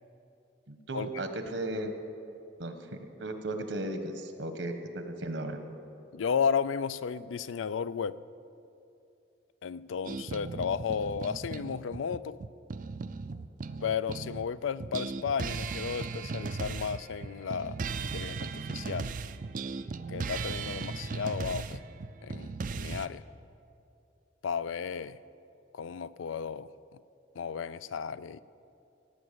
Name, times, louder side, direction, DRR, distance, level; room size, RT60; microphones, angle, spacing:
voice 1, 0.7-1.9 2.6-2.8 3.2-5.6, right 1 dB, 75° right, 7 dB, 1.3 m, -35 dB
voice 2, 6.1-8.2 9.6-12.4 13.8-19.1 20.1-21.8 22.2-23.2 24.4-25.2 25.7-26.7 27.4-28.4, left 6 dB, 90° left, 16 dB, 0.4 m, -33 dB
sound 1, 10.0-14.5 14.8-23.1, right 4 dB, 45° right, 0.4 m, -37 dB
17.5 x 8.7 x 6.9 m, 2.7 s
head